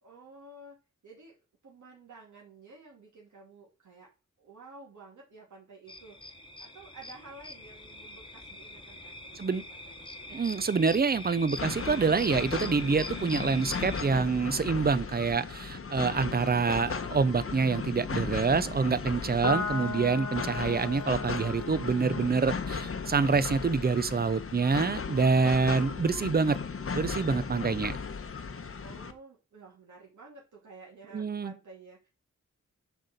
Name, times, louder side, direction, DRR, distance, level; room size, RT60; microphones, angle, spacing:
voice 1, 0.0-0.8 1.0-1.4 1.6-4.1 4.4-6.3 6.6-10.3 28.8-32.1, right 3 dB, 75° right, 2.5 m, -52 dB
sound 1, 5.9-14.0, left 2 dB, 15° left, 1.2 m, -43 dB
voice 2, 10.3-26.6 26.9-28.0 31.1-31.5, right 4 dB, 30° right, 0.6 m, -26 dB
sound 2, 11.6-29.1, left 5 dB, 45° left, 1.0 m, -36 dB
Piano, 19.4-26.1, left 4 dB, 80° left, 1.8 m, -39 dB
8.0 x 4.1 x 6.6 m
wide cardioid pair, 80°, 30 cm